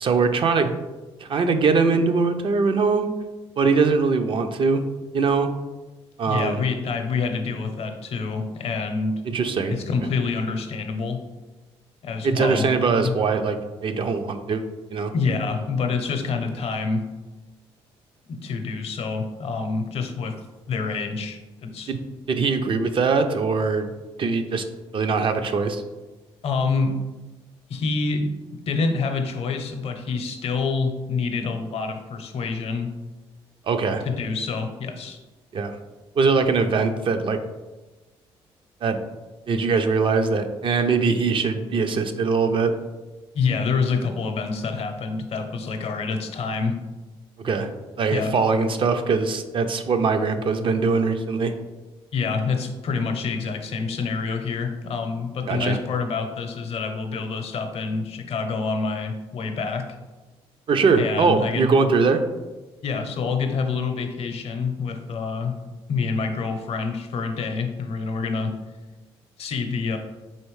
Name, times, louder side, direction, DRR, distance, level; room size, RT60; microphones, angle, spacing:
voice 1, 0.0-0.7 1.2-3.1 3.6-4.8 5.1-5.5 6.2-6.6 9.3-9.8 12.2-13.6 13.8-14.6 14.9-15.1 21.9-22.0 22.3-23.9 24.2-24.6 24.9-25.8 33.7-34.0 35.5-35.8 36.2-37.4 38.8-39.0 39.5-42.7 47.4-47.7 48.0-51.5 55.5-55.8 60.7-62.2, right 4 dB, 45° right, 7 dB, 0.4 m, -21 dB
voice 2, 6.3-9.2 9.7-11.2 12.0-12.7 13.0-13.1 15.1-17.1 18.3-20.3 20.7-21.9 26.4-27.0 27.7-32.9 34.0-35.2 43.3-46.8 48.1-48.3 52.1-59.9 60.9-61.7 62.8-65.5 65.9-68.6 69.4-70.0, left 4 dB, 60° left, 5 dB, 0.6 m, -27 dB
4.2 x 3.1 x 3.1 m, 1.2 s
supercardioid pair, 70°, 12 cm